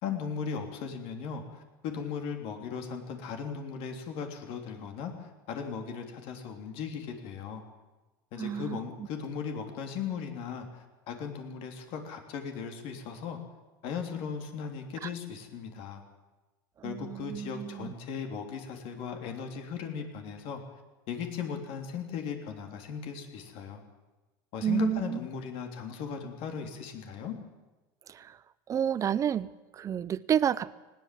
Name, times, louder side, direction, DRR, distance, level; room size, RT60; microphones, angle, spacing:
voice 1, 0.0-7.6 8.3-13.4 13.8-16.0 16.8-20.6 21.1-23.8 24.5-27.4, left 6 dB, 55° left, 4 dB, 3.3 m, -37 dB
voice 2, 8.4-9.1 15.0-15.1 16.8-17.9 24.6-25.2 28.1-28.4 28.7-30.8, right 9 dB, 30° right, 18 dB, 0.7 m, -30 dB
20.0 x 17.5 x 7.7 m, 1.1 s
supercardioid pair, 125°, 12 cm